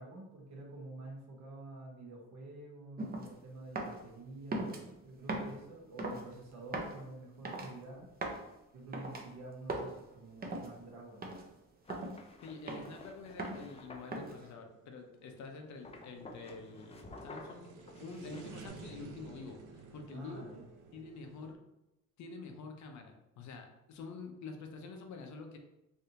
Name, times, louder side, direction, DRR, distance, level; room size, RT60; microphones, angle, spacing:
voice 1, 0.0-8.1 8.7-11.2 20.1-20.7, right 2 dB, 65° right, -2 dB, 1.1 m, -48 dB
sound 1, 3.0-3.3 3.8-4.0 4.5-4.8 5.3-5.6 6.0-6.2 6.7-7.0 7.4-7.7 8.2-8.4 8.9-9.2 9.7-9.9 10.4-10.7 11.2-11.4 11.9-12.2 12.7-13.0 13.4-13.7 14.1-14.5, right 2 dB, 30° right, 0.6 m, -38 dB
sound 2, 10.2-21.5, right 5 dB, 80° right, 0.5 m, -55 dB
sound 3, 11.8-14.1 15.8-18.7, left 2 dB, 20° left, 0.4 m, -52 dB
voice 2, 12.4-17.7 18.0-20.5 20.9-21.6 22.2-25.6, left 3 dB, 70° left, 4 dB, 0.6 m, -47 dB
3.3 x 2.6 x 2.8 m, 0.92 s
cardioid pair, 90°, 30 cm